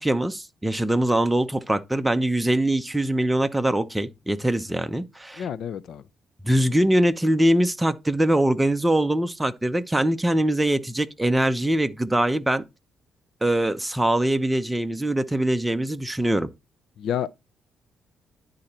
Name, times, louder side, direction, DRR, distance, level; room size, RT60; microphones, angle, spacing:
voice 1, 0.0-5.5 6.4-12.6 13.4-16.5, right 1 dB, 10° right, 0.7 m, -22 dB
voice 2, 5.4-6.1 17.0-17.3, left 9 dB, 70° left, 0.5 m, -29 dB
10.5 x 3.9 x 4.3 m
cardioid pair, 90°, 0 cm